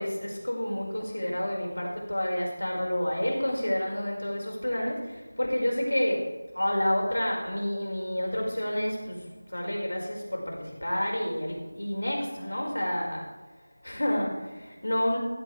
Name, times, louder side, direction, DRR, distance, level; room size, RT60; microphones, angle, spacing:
voice 1, 0.0-13.2 13.8-15.2, left 1 dB, 80° left, -1 dB, 5.1 m, -29 dB
15.5 x 13.5 x 3.4 m, 1.2 s
figure-of-eight pair, 175°, 0 cm